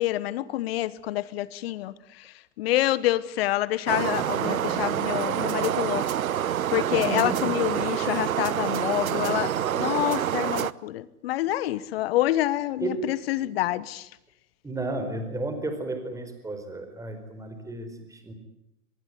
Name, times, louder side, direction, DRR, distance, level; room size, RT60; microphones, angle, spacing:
voice 1, 0.0-2.3 2.6-6.0 6.7-14.1, left 15 dB, 40° left, 19 dB, 1.3 m, -27 dB
sound 1, 3.9-10.7, right 10 dB, 65° right, 1.0 m, -27 dB
voice 2, 4.7-5.0 6.9-7.5 12.8-13.0 14.6-18.3, right 2 dB, 5° right, 7 dB, 4.5 m, -33 dB
24.5 x 21.5 x 9.5 m, 0.84 s
figure-of-eight pair, 120°, 44 cm